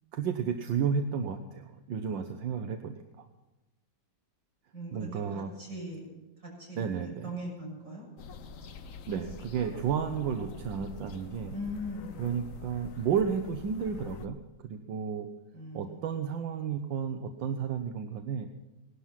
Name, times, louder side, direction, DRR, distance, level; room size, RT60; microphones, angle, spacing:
voice 1, 0.1-3.3 4.9-5.5 6.8-7.3 9.1-11.5 12.2-14.4 14.6-15.3 15.7-18.5, right 7 dB, 80° right, 7 dB, 1.6 m, -32 dB
voice 2, 4.7-6.0 6.4-8.1 10.0-10.3 11.5-12.5 15.5-16.1, equal, 40° right, -3 dB, 7.2 m, -41 dB
sound 1, 8.2-14.3, left 4 dB, 55° left, 1.1 m, -45 dB
18.0 x 12.0 x 5.8 m, 1.1 s
omnidirectional pair, 2.1 m